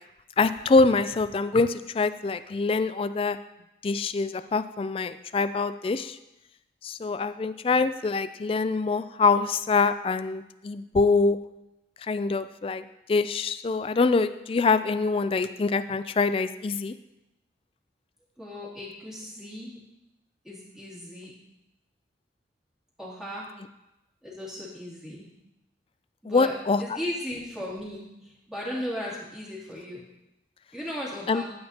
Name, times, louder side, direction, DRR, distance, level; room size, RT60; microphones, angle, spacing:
voice 1, 0.4-3.4 3.8-6.2 6.8-11.4 12.0-12.8 13.1-16.9 26.3-26.8 31.3-31.4, left 4 dB, 30° left, 12 dB, 0.3 m, -24 dB
voice 2, 18.4-19.8 20.4-21.3 23.0-23.5 24.2-25.3 26.2-26.5 26.8-30.0 30.7-31.5, left 1 dB, 5° right, -7 dB, 2.7 m, -36 dB
13.0 x 8.5 x 2.9 m, 0.92 s
head